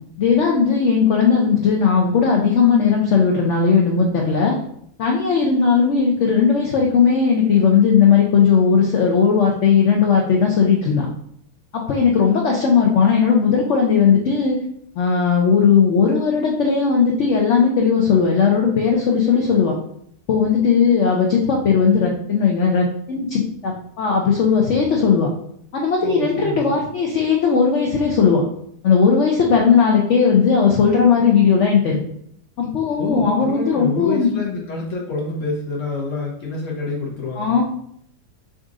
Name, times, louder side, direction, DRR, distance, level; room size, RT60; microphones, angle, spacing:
voice 1, 0.2-4.6 5.0-11.1 11.9-14.6 15.0-19.8 20.3-25.3 25.7-28.5 28.8-32.0 32.6-34.3 37.4-37.6, left 6 dB, 80° left, 0 dB, 0.6 m, -17 dB
voice 2, 26.0-26.7 33.0-37.6, left 3 dB, 55° left, -4 dB, 0.9 m, -27 dB
4.0 x 2.5 x 3.6 m, 0.68 s
omnidirectional pair, 1.9 m